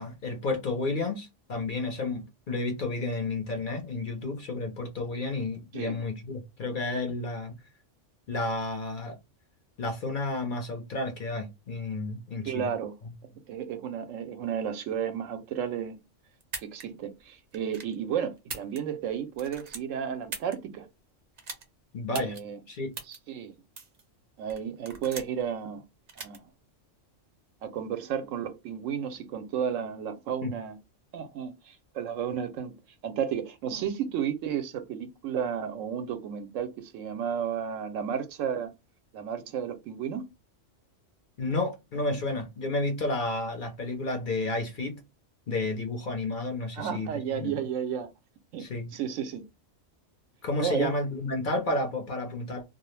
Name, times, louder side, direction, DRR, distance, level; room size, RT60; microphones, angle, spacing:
voice 1, 0.0-7.6 8.3-9.2 9.8-12.7 21.9-22.4 22.7-22.9 30.4-30.5 41.4-45.0 45.5-47.6 48.6-49.0 50.4-52.6, left 2 dB, 50° left, 0.7 m, -31 dB
voice 2, 12.4-12.9 13.3-16.0 16.6-20.9 22.1-22.6 23.1-23.6 24.4-25.8 26.2-26.5 27.6-30.8 31.1-32.7 33.0-38.7 39.1-40.3 46.7-48.1 48.5-49.4 50.6-50.9, right 8 dB, 90° right, 1.0 m, -33 dB
sound 1, 16.4-16.8 17.5-17.9 18.4-19.1 19.4-20.5 21.4-21.6 22.1-22.4 22.9-23.2 23.8-24.0 24.5-25.4 26.1-26.4, right 4 dB, 45° right, 0.6 m, -39 dB
2.3 x 2.0 x 3.0 m
omnidirectional pair, 1.3 m